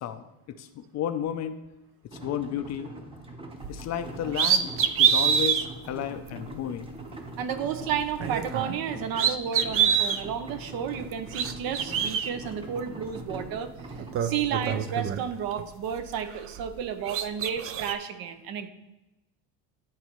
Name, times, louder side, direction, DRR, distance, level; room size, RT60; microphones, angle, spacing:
voice 1, 0.6-1.6 2.1-2.9 3.7-4.7 5.0-6.9, left 10 dB, 40° left, 9 dB, 0.5 m, -32 dB
sound 1, 2.1-14.8, right 1 dB, 15° right, 0.9 m, -42 dB
sound 2, 3.6-3.8 4.3-5.6 6.3-6.4 8.1-8.8 9.1-10.2 11.1-12.3 13.4-13.5 13.9-15.6 16.0-16.8 17.1-17.9, right 8 dB, 35° right, 0.4 m, -25 dB
voice 2, 7.4-13.7 14.2-18.7, right 8 dB, 60° right, 10 dB, 0.8 m, -32 dB
11.0 x 4.0 x 3.0 m, 0.96 s
cardioid pair, 120°, 41 cm